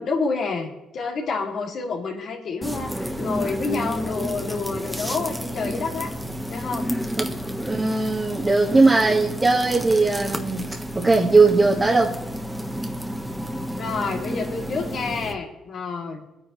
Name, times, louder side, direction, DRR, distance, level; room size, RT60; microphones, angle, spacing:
voice 1, 0.0-6.1 6.5-6.9 13.7-16.2, left 4 dB, 65° left, 0 dB, 2.6 m, -29 dB
sound 1, 2.6-15.3, equal, 5° right, 1.3 m, -31 dB
voice 2, 7.6-10.7 11.0-12.2, right 3 dB, 25° right, -2 dB, 1.8 m, -19 dB
21.5 x 9.4 x 3.2 m, 0.99 s
cardioid pair, 90°, 0 cm